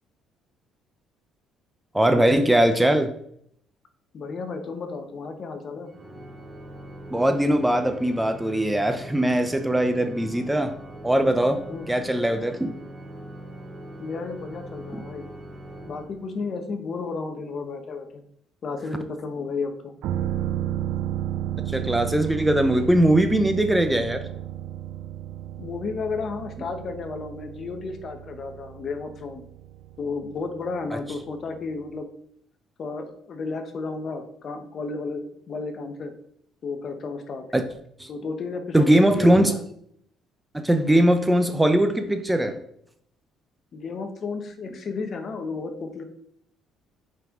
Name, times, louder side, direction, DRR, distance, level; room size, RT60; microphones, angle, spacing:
voice 1, 1.9-3.1 7.1-10.7 11.0-11.6 11.9-12.8 14.9-15.0 21.7-24.2 37.5-37.6 38.0-38.1 38.7-39.5 40.6-42.6, right 1 dB, 5° right, 8 dB, 0.5 m, -20 dB
voice 2, 4.1-5.9 11.7-11.9 14.0-15.3 15.8-18.2 18.6-19.9 25.6-29.4 30.0-32.1 32.8-36.1 36.6-37.4 38.1-39.6 43.7-46.0, left 4 dB, 45° left, 7 dB, 1.0 m, -33 dB
Organ, 5.9-16.6, right 1 dB, 35° right, 1.7 m, -41 dB
sound 1, 20.0-31.6 31.9-32.0, right 12 dB, 80° right, 0.4 m, -33 dB
5.8 x 5.2 x 3.7 m, 0.69 s
cardioid pair, 110°, 0 cm